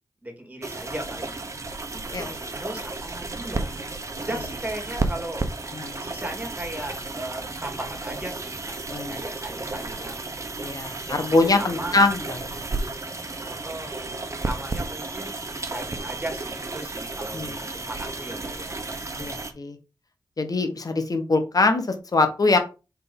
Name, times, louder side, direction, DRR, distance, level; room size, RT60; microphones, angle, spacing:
voice 1, 0.2-1.4 2.0-3.8 4.1-5.4 6.0-8.8 9.1-10.2 11.1-11.3 11.6-12.0 13.4-15.3 15.7-18.8, right 1 dB, 20° right, 3 dB, 2.4 m, -37 dB
sound 1, 0.6-19.5, right 3 dB, 40° right, 1.2 m, -33 dB
voice 2, 10.6-12.6 17.3-17.6 19.2-19.8 20.4-22.6, left 3 dB, 50° left, 7 dB, 1.5 m, -23 dB
4.8 x 3.8 x 5.4 m, 0.30 s
cardioid pair, 55°, 8 cm